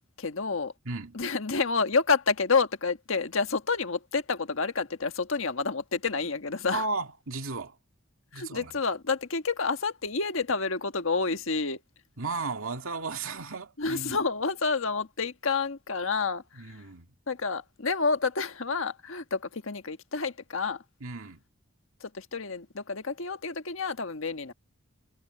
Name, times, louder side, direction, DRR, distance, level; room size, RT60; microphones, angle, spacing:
voice 1, 0.2-0.7 1.1-6.8 8.3-11.8 13.8-16.8 17.3-20.8 22.0-24.5, left 4 dB, 75° left, 1.5 m, -29 dB
voice 2, 0.9-1.2 6.7-7.8 8.3-8.7 12.2-14.2 16.6-17.1 21.0-21.4, right 3 dB, 85° right, 2.1 m, -34 dB
head